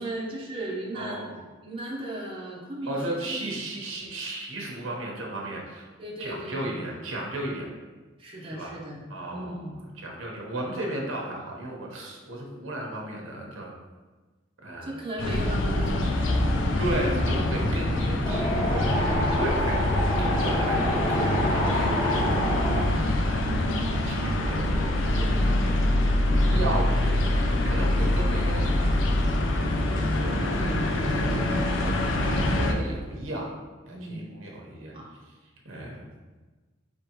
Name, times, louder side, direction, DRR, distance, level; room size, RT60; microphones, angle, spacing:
voice 1, 0.0-1.3 1.6-3.6 6.0-6.8 8.2-9.8 14.8-16.6 22.8-23.2 30.4-31.7 33.9-34.2 34.9-35.0, right 1 dB, 25° right, -4 dB, 0.9 m, -36 dB
voice 2, 0.9-1.3 2.9-5.9 6.2-7.7 8.4-8.7 9.1-9.6 10.0-13.7 14.6-15.0 16.8-22.8 23.1-25.7 26.3-28.9 29.9-31.9 32.5-33.5 33.9-34.9 35.6-36.0, right 1 dB, 90° right, -1 dB, 1.0 m, -35 dB
sound 1, 15.2-32.7, left 1 dB, 70° left, 0.5 m, -25 dB
Wind, 18.2-22.8, left 1 dB, 25° left, 0.9 m, -27 dB
4.9 x 3.7 x 2.9 m, 1.3 s
head